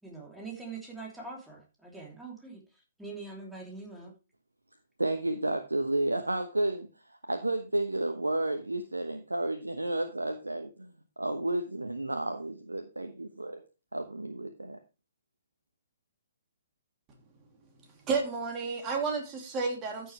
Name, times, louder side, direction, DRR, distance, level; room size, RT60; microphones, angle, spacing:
voice 1, 0.0-4.1, right 4 dB, 5° right, 3.0 m, -43 dB
voice 2, 5.0-13.6 13.9-14.8, right 2 dB, 80° right, 1.1 m, -32 dB
voice 3, 17.9-20.1, right 4 dB, 20° right, 2.9 m, -32 dB
14.0 x 6.8 x 3.3 m
figure-of-eight pair, 125°, 0 cm